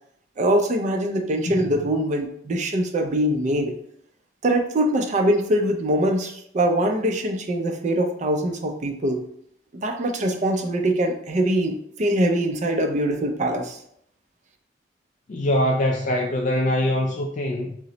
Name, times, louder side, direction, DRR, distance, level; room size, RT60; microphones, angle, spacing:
voice 1, 0.4-3.7 4.4-9.2 9.7-13.8, right 1 dB, 40° right, 0.4 m, -23 dB
voice 2, 15.3-17.8, left 1 dB, 45° left, 0.3 m, -23 dB
2.9 x 2.0 x 3.8 m
head